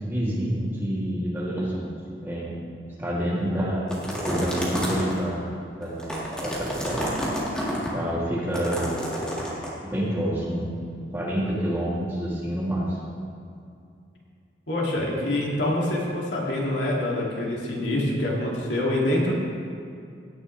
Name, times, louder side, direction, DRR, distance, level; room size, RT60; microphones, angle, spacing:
voice 1, 0.0-1.9 2.2-2.5 3.0-3.9 4.2-5.5 5.8-7.0 7.8-9.0 9.8-10.8 11.1-12.9, equal, 10° right, -8 dB, 2.8 m, -28 dB
sound 1, 3.9-5.2 5.8-7.9 8.5-9.7, equal, 5° left, 2.0 m, -29 dB
voice 2, 14.7-19.3, left 1 dB, 80° left, -4 dB, 2.6 m, -25 dB
17.0 x 10.0 x 3.3 m, 2.4 s
head